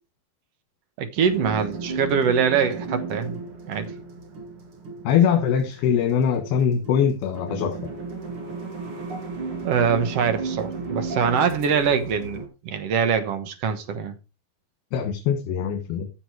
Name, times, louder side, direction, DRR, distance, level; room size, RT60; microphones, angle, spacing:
voice 1, 1.0-3.3 3.7-3.9 9.6-14.1, right 6 dB, 65° right, 1.6 m, -23 dB
sound 1, 1.2-12.5, right 4 dB, 40° right, 2.6 m, -34 dB
voice 2, 5.1-7.8 14.9-16.1, left 8 dB, 80° left, 3.5 m, -22 dB
14.5 x 6.3 x 4.8 m
omnidirectional pair, 4.4 m